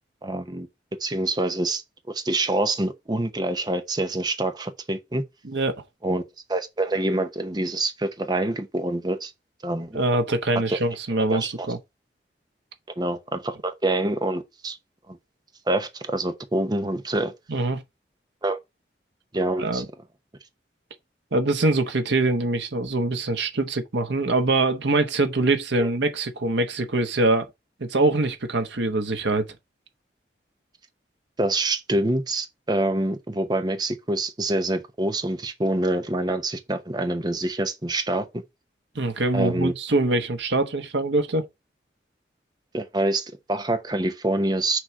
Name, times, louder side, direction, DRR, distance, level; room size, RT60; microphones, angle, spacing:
voice 1, 0.2-0.7 1.0-5.2 6.0-6.2 6.5-9.3 9.6-10.0 10.7-10.8 11.1-11.7 13.0-14.8 15.1-15.2 15.7-17.3 18.4-18.6 19.3-19.8 25.8-25.9 31.4-38.4 39.3-39.7 42.7-44.8, right 2 dB, 25° right, 0.8 m, -26 dB
voice 2, 5.4-5.8 9.9-11.8 17.5-17.8 19.6-19.8 21.3-27.5 27.8-29.5 38.9-41.5, right 2 dB, 85° right, 1.0 m, -23 dB
6.2 x 3.3 x 5.8 m
head